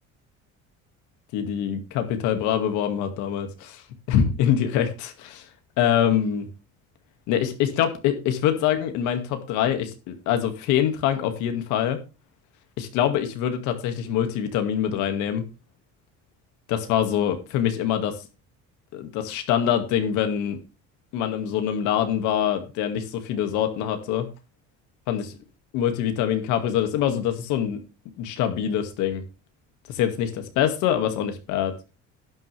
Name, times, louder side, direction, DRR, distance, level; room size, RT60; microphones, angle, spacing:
voice 1, 1.3-3.8 4.1-5.5 5.8-6.5 7.3-12.0 12.8-15.4 16.7-18.2 18.9-20.6 21.1-24.3 25.1-25.4 25.7-27.8 28.2-29.2 29.9-31.7, left 9 dB, 85° left, 7 dB, 2.2 m, -24 dB
11.5 x 9.8 x 3.4 m, 0.29 s
cardioid pair, 175°, 29 cm